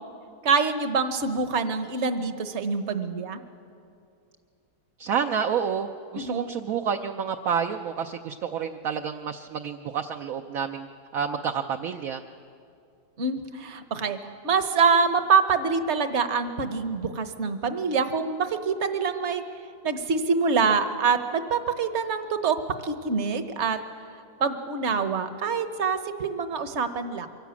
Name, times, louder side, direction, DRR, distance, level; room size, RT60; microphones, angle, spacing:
voice 1, 0.4-3.4 6.1-6.5 13.2-14.2 14.4-19.4 19.8-23.8 24.4-27.3, right 5 dB, 50° right, 10 dB, 1.3 m, -25 dB
voice 2, 5.0-10.9 11.1-12.2, right 7 dB, 65° right, 5 dB, 1.1 m, -29 dB
23.5 x 16.5 x 8.4 m, 2.5 s
omnidirectional pair, 1.7 m